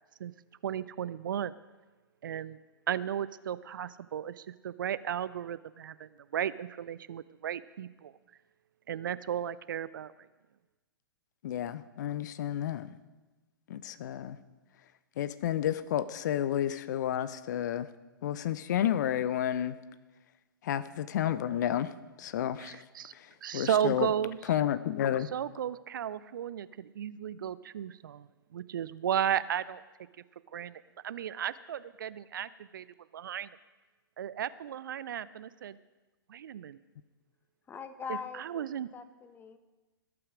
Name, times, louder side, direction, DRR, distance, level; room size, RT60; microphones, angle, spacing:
voice 1, 0.6-1.5 2.2-2.6 2.9-8.1 8.9-10.3 22.6-23.1 23.4-24.4 25.3-29.8 30.5-32.8 33.1-33.5 34.2-35.8 36.3-36.8 38.1-38.9, right 9 dB, 60° right, 17 dB, 0.5 m, -34 dB
voice 2, 11.4-12.9 13.7-14.4 15.2-17.9 18.2-19.8 20.6-21.9 22.2-22.8 23.1-24.1 24.5-25.3, left 11 dB, 50° left, 16 dB, 0.7 m, -31 dB
voice 3, 37.7-38.7 38.9-39.6, left 6 dB, 15° left, 11 dB, 1.0 m, -42 dB
19.0 x 8.7 x 5.0 m, 1.2 s
figure-of-eight pair, 110°, 12 cm